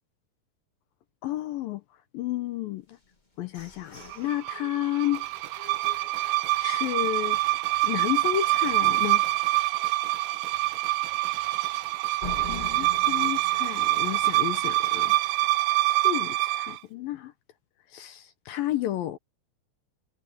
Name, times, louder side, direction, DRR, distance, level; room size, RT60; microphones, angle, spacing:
voice 1, 1.2-1.8 2.1-3.0 3.4-5.3 6.0-6.2 6.6-9.2 12.5-15.1 15.8-17.3 17.9-19.2, left 13 dB, 75° left, 2.3 m, -32 dB
sound 1, 2.9-6.8 7.3-7.4 7.7-8.1 8.5-8.6 9.1-9.2 12.2-14.9, left 3 dB, 30° left, 0.8 m, -44 dB
sound 2, 4.1-16.8, right 18 dB, 80° right, 2.5 m, -26 dB
sound 3, 5.1-16.1 16.4-16.5, right 10 dB, 60° right, 2.6 m, -47 dB
omnidirectional pair, 4.8 m